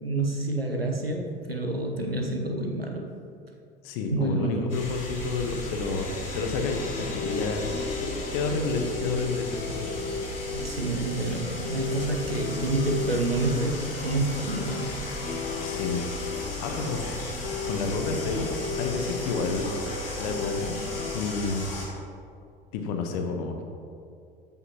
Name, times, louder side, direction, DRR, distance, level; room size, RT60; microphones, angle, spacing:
voice 1, 0.0-3.1 4.1-4.7 10.5-14.9, right 2 dB, 90° right, 2 dB, 0.9 m, -28 dB
voice 2, 3.8-7.7 8.0-9.9 15.6-16.3 16.6-17.2 17.6-18.5 18.8-19.7 20.2-21.7 22.7-23.6, left 4 dB, 55° left, 4 dB, 1.2 m, -30 dB
sound 1, 4.7-21.9, left 1 dB, 80° left, 2.1 m, -36 dB
sound 2, 5.7-21.2, left 4 dB, 25° left, 1.0 m, -36 dB
14.0 x 5.5 x 3.0 m, 2.4 s
figure-of-eight pair, 70°, 29 cm